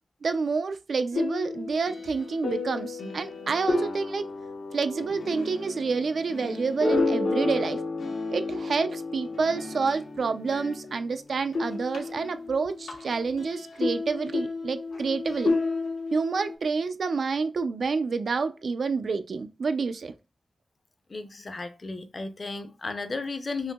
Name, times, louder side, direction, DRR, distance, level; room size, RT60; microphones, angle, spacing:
voice 1, 0.2-4.3 4.7-7.8 8.3-15.5 16.1-20.1, right 4 dB, 60° right, 0.3 m, -28 dB
sound 1, 1.1-11.1 11.4-16.5, left 3 dB, 90° left, 0.9 m, -31 dB
voice 2, 21.1-23.7, left 3 dB, 35° left, 0.5 m, -34 dB
5.6 x 2.6 x 2.2 m
wide cardioid pair, 170°, 0 cm